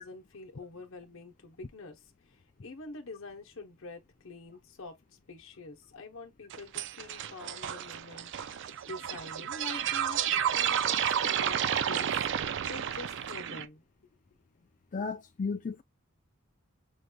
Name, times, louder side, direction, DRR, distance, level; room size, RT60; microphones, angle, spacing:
voice 1, 0.0-11.6 11.9-12.1 12.4-13.8, left 3 dB, 60° left, 0.9 m, -46 dB
sound 1, 6.5-13.7, right 9 dB, 55° right, 0.4 m, -31 dB
voice 2, 14.9-15.8, left 4 dB, 35° left, 0.4 m, -34 dB
6.3 x 3.1 x 2.3 m
head